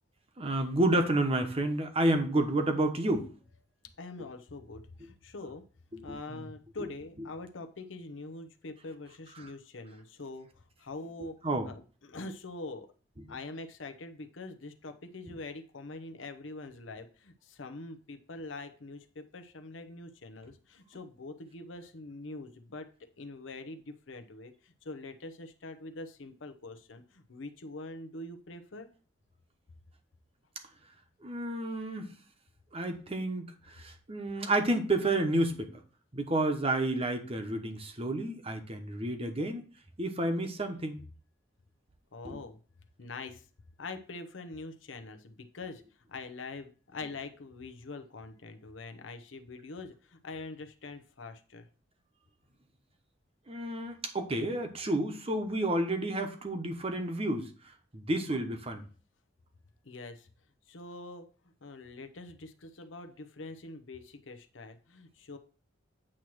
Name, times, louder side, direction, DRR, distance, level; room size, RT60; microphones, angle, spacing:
voice 1, 0.4-3.3 5.9-6.5 9.4-9.5 11.4-11.7 31.2-32.1 32.7-35.8 36.1-39.6 40.0-41.0 42.2-42.4 53.5-57.5 57.9-58.8, right 1 dB, 30° right, 6 dB, 1.0 m, -30 dB
voice 2, 4.0-5.6 6.0-12.9 13.3-28.9 42.1-42.6 43.0-43.5 43.8-45.8 46.1-51.7 59.8-60.3 60.7-61.3 61.6-65.4, left 2 dB, 85° left, 7 dB, 0.8 m, -44 dB
8.7 x 3.1 x 6.1 m, 0.39 s
head